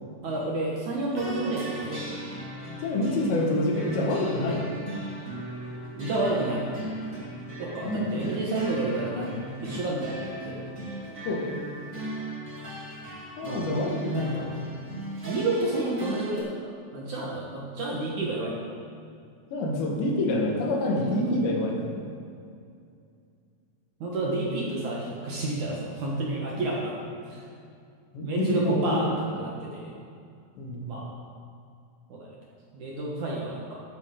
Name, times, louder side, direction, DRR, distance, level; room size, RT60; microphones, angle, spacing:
voice 1, 0.2-2.0 6.0-6.7 7.6-9.4 9.6-10.6 13.4-13.7 15.3-18.6 24.0-27.0 27.3-27.4 28.2-29.1 29.4-29.9 30.8-31.1 32.1-32.3 32.7-33.8, right 2 dB, 60° right, -3 dB, 2.1 m, -30 dB
sound 1, 1.1-16.4, right 1 dB, 25° right, 1.9 m, -37 dB
voice 2, 2.8-4.7 7.8-8.4 11.3-11.6 13.4-14.5 19.5-22.1 26.5-26.6 28.1-29.2 30.6-31.0, left 1 dB, 85° left, -1 dB, 4.0 m, -27 dB
13.5 x 12.0 x 3.8 m, 2.4 s
omnidirectional pair, 4.9 m